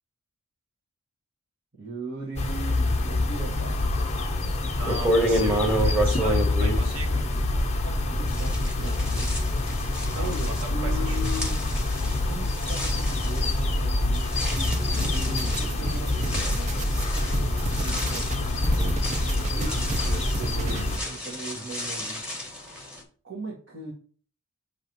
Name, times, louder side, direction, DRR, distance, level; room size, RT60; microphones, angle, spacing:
voice 1, 1.8-3.8 7.8-9.3 10.1-14.3 15.0-16.7 17.1-22.4 23.2-23.9, right 1 dB, 55° right, 1.8 m, -39 dB
sound 1, 2.4-21.0, left 2 dB, 30° left, 0.9 m, -26 dB
sound 2, 4.4-4.5 4.8-8.0 8.3-23.0, equal, 5° right, 1.5 m, -31 dB
voice 2, 4.7-7.3 10.2-11.2 20.6-20.9, right 3 dB, 85° right, 1.3 m, -38 dB
sound 3, 14.6-21.2, right 4 dB, 30° right, 0.4 m, -36 dB
6.2 x 3.2 x 5.4 m
head